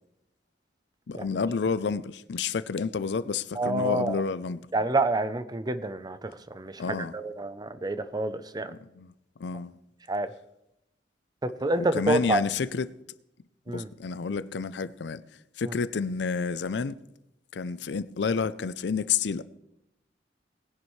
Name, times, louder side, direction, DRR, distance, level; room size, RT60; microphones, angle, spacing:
voice 1, 1.1-4.6 6.8-7.1 8.6-9.1 9.4-9.7 11.8-12.9 13.7-15.2 15.6-17.0 17.5-19.4, left 5 dB, 70° left, 0.5 m, -30 dB
voice 2, 3.6-4.2 4.7-6.8 7.1-8.7 10.1-10.3 11.4-12.4 13.7-13.9, right 2 dB, 25° right, 0.6 m, -28 dB
19.0 x 10.5 x 3.2 m
head